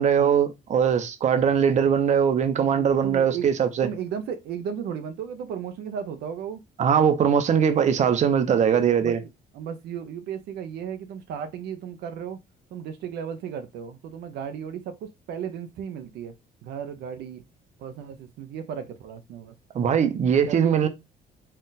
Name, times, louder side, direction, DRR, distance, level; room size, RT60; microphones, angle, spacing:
voice 1, 0.0-3.9 6.8-9.2 19.7-20.9, right 7 dB, 45° right, 0.8 m, -21 dB
voice 2, 2.6-3.5 3.8-6.6 9.0-9.1 9.5-12.4 12.7-16.4 16.6-17.4 17.8-19.6 20.5-20.9, right 8 dB, 75° right, 0.7 m, -35 dB
4.3 x 2.4 x 3.9 m
cardioid pair, 110°, 17 cm